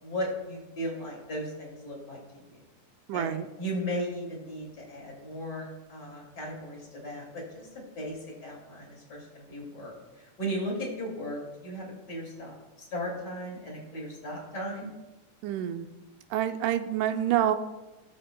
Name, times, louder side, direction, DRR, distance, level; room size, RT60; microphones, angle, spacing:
voice 1, 0.0-2.6 3.1-14.9, equal, 35° left, -3 dB, 2.7 m, -36 dB
voice 2, 3.1-3.5 15.4-15.9 16.3-17.6, right 11 dB, 90° right, 9 dB, 2.1 m, -27 dB
17.0 x 7.6 x 2.2 m, 1.1 s
omnidirectional pair, 3.6 m